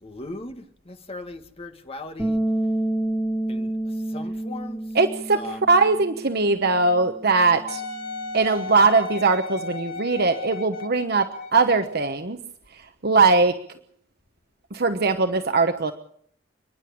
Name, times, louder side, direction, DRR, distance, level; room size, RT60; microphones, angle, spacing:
voice 1, 0.0-2.4 3.5-3.7 4.1-4.8 5.3-5.6, left 2 dB, 30° left, 6 dB, 1.9 m, -38 dB
Bass guitar, 2.2-8.4, right 1 dB, ahead, 2.9 m, -29 dB
voice 2, 4.9-7.8 8.3-12.4 13.0-13.6 14.7-15.9, right 3 dB, 55° right, 7 dB, 1.1 m, -20 dB
Wind instrument woodwind instrument, 7.7-12.0 12.6-12.7, left 4 dB, 55° left, 2.3 m, -35 dB
29.5 x 10.5 x 8.7 m, 0.65 s
head